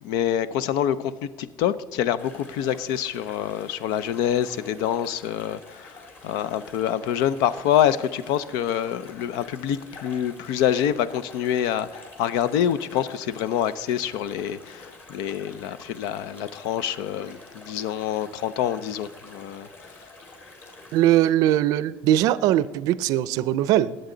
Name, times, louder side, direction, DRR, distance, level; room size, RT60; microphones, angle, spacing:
voice 1, 0.0-20.0, left 10 dB, 85° left, 16 dB, 0.6 m, -26 dB
sound 1, 2.2-21.0, left 2 dB, 30° left, 2.1 m, -47 dB
voice 2, 20.9-24.0, right 13 dB, 65° right, 18 dB, 0.5 m, -21 dB
20.0 x 7.8 x 3.9 m, 1.3 s
cardioid pair, 165°, 7 cm